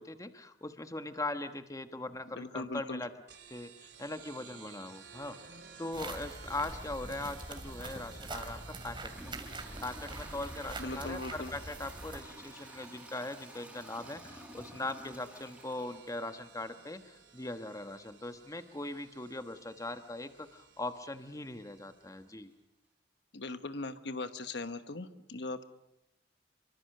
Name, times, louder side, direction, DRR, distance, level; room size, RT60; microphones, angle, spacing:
voice 1, 0.0-3.1 3.5-9.4 9.8-22.5, left 2 dB, 20° left, 9 dB, 1.3 m, -40 dB
voice 2, 2.3-3.0 10.8-11.5 23.3-25.6, left 2 dB, 70° left, 11 dB, 1.1 m, -39 dB
sound 1, 3.3-22.4, right 6 dB, 70° right, 3.1 m, -55 dB
sound 2, 5.9-12.2, right 2 dB, 30° right, 2.7 m, -44 dB
Toilet flush / Trickle dribble, 9.1-16.9, right 1 dB, 5° right, 4.9 m, -52 dB
26.5 x 24.0 x 6.7 m, 0.83 s
head